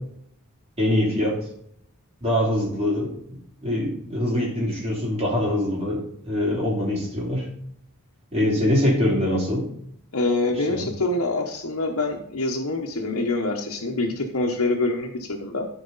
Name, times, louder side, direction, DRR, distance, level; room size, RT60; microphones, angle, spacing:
voice 1, 0.8-1.5 2.2-7.5 8.3-9.7 10.6-10.9, left 1 dB, 30° right, -4 dB, 3.2 m, -24 dB
voice 2, 10.1-15.7, left 2 dB, 75° left, -1 dB, 1.1 m, -25 dB
14.0 x 4.8 x 4.0 m, 0.71 s
head